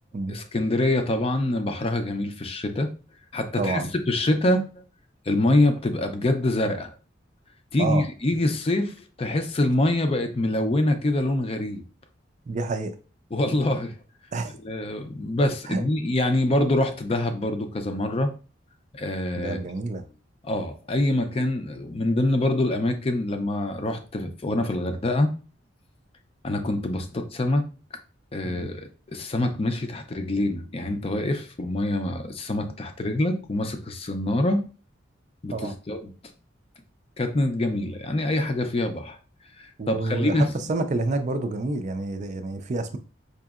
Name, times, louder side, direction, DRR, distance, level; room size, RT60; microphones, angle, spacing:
voice 1, 0.3-2.9 3.3-3.8 4.1-4.6 5.3-6.9 7.7-11.8 13.3-14.0 14.6-18.3 18.9-19.6 20.4-25.3 26.4-27.7 28.3-34.7 35.4-36.0 37.2-39.2 39.6-40.5, left 1 dB, 30° left, 0.5 m, -25 dB
voice 2, 3.6-3.9 7.8-8.0 12.5-12.9 14.3-14.5 15.7-15.8 19.4-20.0 28.4-28.7 35.5-35.7 39.8-43.0, right 3 dB, 40° right, 0.4 m, -28 dB
4.9 x 2.7 x 2.4 m
head